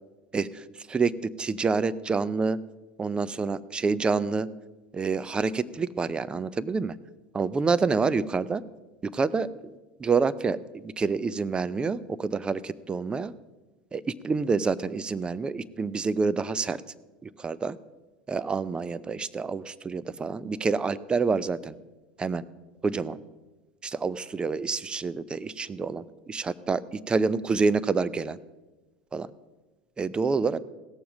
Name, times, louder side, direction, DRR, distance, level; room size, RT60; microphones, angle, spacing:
voice 1, 0.3-1.1 1.4-2.6 3.0-4.5 4.9-6.9 7.3-8.6 9.0-9.5 10.0-13.3 13.9-16.8 17.2-17.8 18.3-21.8 22.2-22.4 22.8-23.2 23.8-26.8 27.1-28.4 29.1-29.3 30.0-30.6, right 4 dB, 20° right, 17 dB, 0.5 m, -27 dB
16.5 x 7.0 x 6.2 m, 1.2 s
hypercardioid pair, 85°, 4 cm